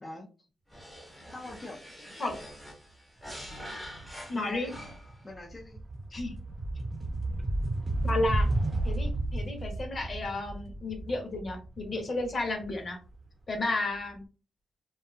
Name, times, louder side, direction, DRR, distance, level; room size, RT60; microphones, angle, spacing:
sound 1, 0.7-5.3, equal, 5° left, 1.0 m, -45 dB
voice 1, 1.3-2.0 4.3-4.8 5.2-5.8, left 2 dB, 25° left, -3 dB, 0.6 m, -43 dB
sound 2, 4.0-4.3 4.6-13.5, right 2 dB, 25° right, 0.9 m, -32 dB
voice 2, 4.3-4.7 6.1-6.3 8.0-8.5 8.8-13.0 13.5-14.2, left 2 dB, 40° left, 4 dB, 1.0 m, -32 dB
2.6 x 2.4 x 2.5 m, 0.34 s
cardioid pair, 80°, 0 cm